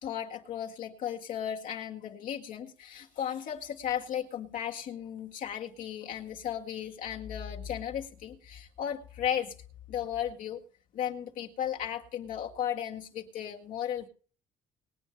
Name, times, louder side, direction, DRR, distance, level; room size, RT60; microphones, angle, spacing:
voice 1, 0.0-9.5 9.9-10.6 10.9-14.1, left 9 dB, 65° left, 1 dB, 1.9 m, -35 dB
20.5 x 9.1 x 3.3 m, 0.40 s
cardioid pair, 150°, 15 cm